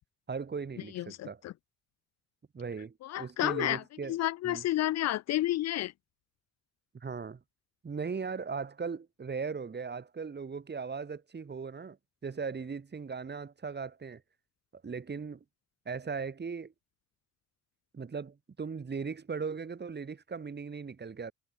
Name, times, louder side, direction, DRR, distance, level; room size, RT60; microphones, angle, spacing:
voice 1, 0.3-1.4 2.5-4.2 4.4-4.6 6.9-7.4 7.8-12.0 12.2-14.2 14.7-15.4 15.9-16.7 17.9-21.3, right 5 dB, 35° right, 4.1 m, -38 dB
voice 2, 0.9-1.5 3.0-3.8 4.1-5.9, left 14 dB, 60° left, 0.4 m, -30 dB
cardioid pair, 90°, 30 cm